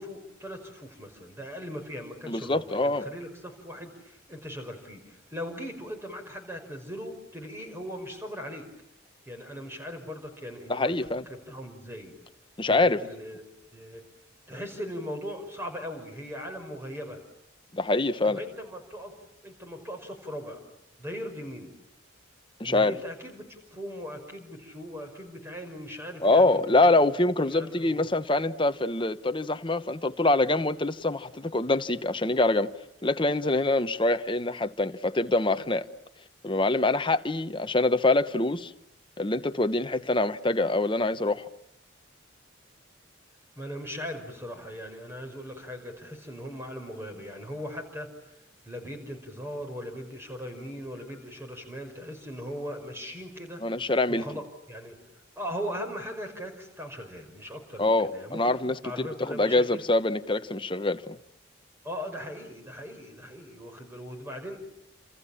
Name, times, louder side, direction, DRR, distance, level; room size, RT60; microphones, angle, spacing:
voice 1, 0.0-8.7 9.3-10.9 11.3-12.1 12.7-13.4 13.7-14.0 14.5-17.2 18.3-19.1 19.4-20.6 21.0-21.7 22.7-26.9 27.5-28.1 43.6-48.3 48.6-53.8 54.1-55.0 55.4-58.5 58.8-59.8 61.8-64.6, equal, 10° right, 5.5 m, -39 dB
voice 2, 2.3-3.0 10.7-11.2 12.6-13.0 17.7-18.4 22.6-23.0 26.2-32.7 33.0-35.8 36.4-38.7 39.2-41.5 53.6-54.2 57.8-61.2, left 2 dB, 25° left, 1.0 m, -25 dB
29.0 x 28.0 x 7.3 m
head